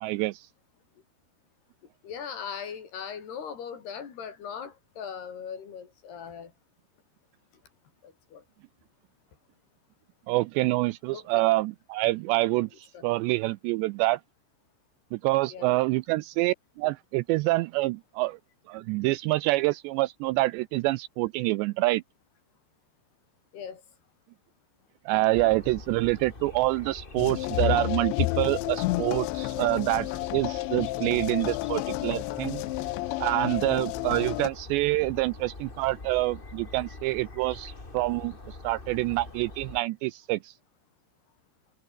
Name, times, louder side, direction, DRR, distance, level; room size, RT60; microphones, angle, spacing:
voice 1, 0.0-0.5 10.3-14.2 15.1-18.4 18.7-22.0 25.1-32.6 33.2-40.5, right 20 dB, 85° right, 2.6 m, -27 dB
voice 2, 2.0-6.5 8.0-8.4 11.1-11.4 12.9-13.0 15.5-15.8 23.5-23.8 30.1-30.2, left 7 dB, 60° left, 5.4 m, -39 dB
sound 1, 25.3-39.8, left 3 dB, 25° left, 1.2 m, -44 dB
sound 2, 27.2-34.5, left 20 dB, 85° left, 2.9 m, -30 dB
omnidirectional pair, 5.4 m